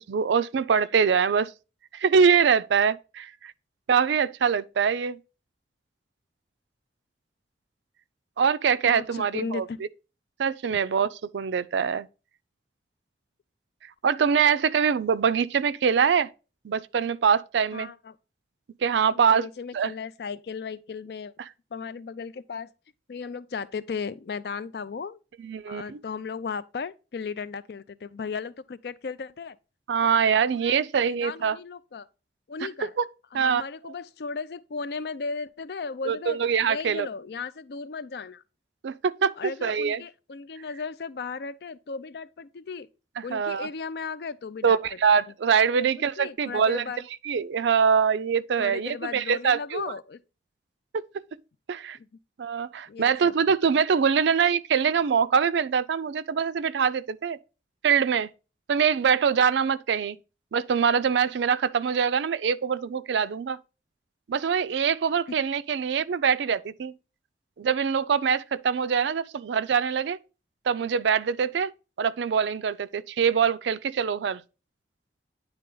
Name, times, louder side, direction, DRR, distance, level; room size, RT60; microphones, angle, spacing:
voice 1, 0.0-1.5 1.9-3.5 3.9-5.2 8.4-9.7 10.4-12.1 14.0-16.3 16.6-17.9 18.8-19.5 19.7-19.9 25.4-26.0 29.9-31.6 32.8-33.0 33.3-33.6 36.1-37.1 38.8-40.0 43.2-43.7 44.6-46.8 47.2-49.8 50.9-51.2 51.7-52.0 52.4-57.4 57.8-58.3 58.7-60.2 60.5-63.6 64.3-66.9 67.6-70.2 70.7-71.7 72.0-74.4, right 6 dB, 75° right, 0.4 m, -24 dB
voice 2, 8.8-9.8 17.7-18.1 19.1-21.3 21.7-22.7 23.1-25.2 25.7-29.6 30.0-30.1 30.5-32.1 32.5-33.0 33.3-36.4 36.7-38.4 39.4-42.9 43.2-44.8 45.7-45.9 46.2-47.1 48.6-50.2 51.9-52.1 52.9-53.3, left 5 dB, 60° left, 0.4 m, -36 dB
9.7 x 3.3 x 3.8 m
head